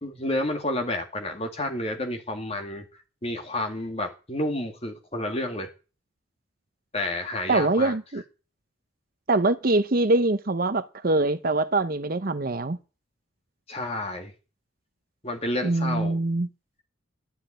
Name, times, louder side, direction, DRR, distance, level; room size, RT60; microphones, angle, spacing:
voice 1, 0.0-2.9 3.2-5.7 6.9-7.9 13.7-14.3 15.2-16.2, left 1 dB, 30° left, 2.3 m, -30 dB
voice 2, 7.5-8.2 9.3-12.8 15.6-16.5, right 2 dB, 45° right, 0.7 m, -23 dB
12.0 x 7.7 x 9.0 m
head